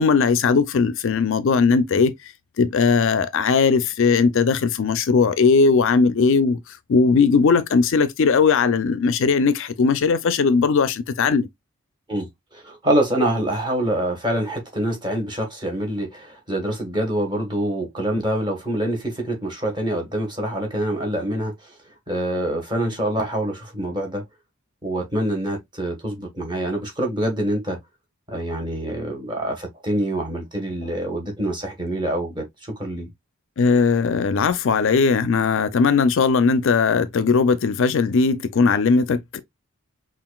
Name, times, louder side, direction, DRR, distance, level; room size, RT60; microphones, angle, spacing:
voice 1, 0.0-2.1 2.6-6.6 6.9-11.5 33.6-39.4, left 5 dB, 60° left, 0.4 m, -18 dB
voice 2, 12.1-21.7 22.1-24.2 24.8-27.8 28.3-33.1, right 1 dB, 20° right, 1.4 m, -25 dB
5.7 x 2.4 x 2.3 m
head